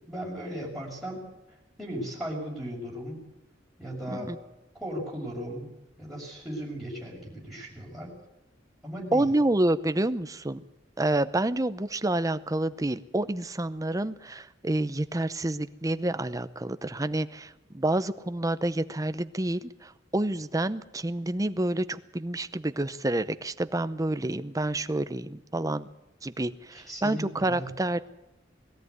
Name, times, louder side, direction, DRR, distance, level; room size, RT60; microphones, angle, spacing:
voice 1, 0.1-1.2 1.8-3.2 3.8-4.3 4.7-5.7 6.0-8.1 8.8-9.3 26.7-27.7, equal, ahead, -5 dB, 6.3 m, -36 dB
voice 2, 9.1-10.6 11.0-25.9 26.2-28.1, right 1 dB, 20° right, 12 dB, 0.7 m, -28 dB
21.0 x 13.5 x 9.5 m, 0.91 s
head